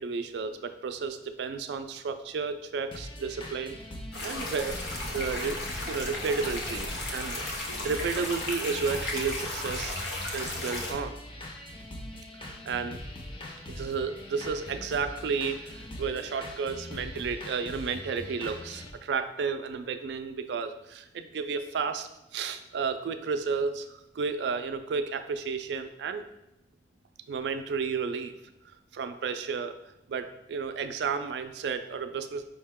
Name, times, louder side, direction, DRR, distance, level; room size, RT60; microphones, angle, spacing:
voice 1, 0.0-3.7 4.2-4.8 5.1-5.6 5.9-7.4 7.8-10.0 10.3-11.2 12.7-13.0 13.7-26.3 27.3-28.3 28.9-29.7 30.1-32.4, right 5 dB, 70° right, 8 dB, 0.3 m, -32 dB
sound 1, 2.9-18.9, left 1 dB, 30° left, 0.5 m, -42 dB
sound 2, 4.1-10.9, left 2 dB, 70° left, 0.8 m, -35 dB
5.2 x 2.2 x 3.5 m, 0.92 s
head